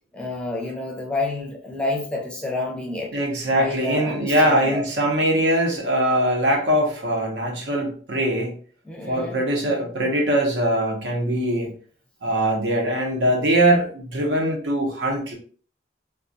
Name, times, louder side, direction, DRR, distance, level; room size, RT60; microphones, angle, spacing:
voice 1, 0.1-3.1 3.6-4.8 8.8-9.4, left 2 dB, 5° left, 0 dB, 0.5 m, -29 dB
voice 2, 3.1-8.5 9.1-11.7 12.2-15.3, right 1 dB, 80° right, 1 dB, 0.8 m, -22 dB
2.3 x 2.2 x 2.6 m, 0.43 s
head